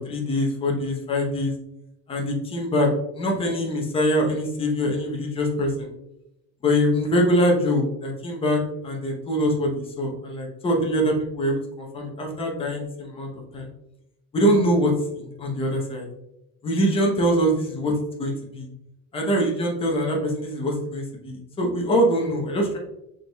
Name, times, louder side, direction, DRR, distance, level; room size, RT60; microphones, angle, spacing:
voice 1, 0.0-1.5 2.1-5.9 6.6-9.7 10.0-13.7 14.3-16.0 16.6-18.7 19.1-22.8, equal, 15° left, -1 dB, 0.8 m, -23 dB
6.5 x 3.5 x 2.3 m, 0.88 s
cardioid pair, 160°, 38 cm